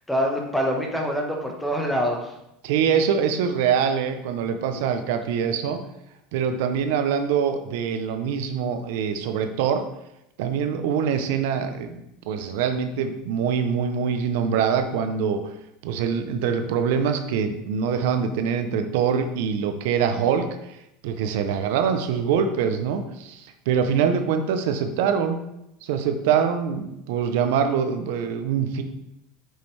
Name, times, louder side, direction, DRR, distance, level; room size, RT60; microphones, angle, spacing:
voice 1, 0.1-2.3, equal, 5° left, 1 dB, 1.4 m, -25 dB
voice 2, 2.6-5.8 6.3-9.8 10.4-12.0 12.3-15.5 15.8-20.8 21.0-25.4 25.8-28.8, right 7 dB, 75° right, 7 dB, 0.7 m, -24 dB
6.4 x 6.3 x 3.4 m, 0.84 s
supercardioid pair, 115°, 0 cm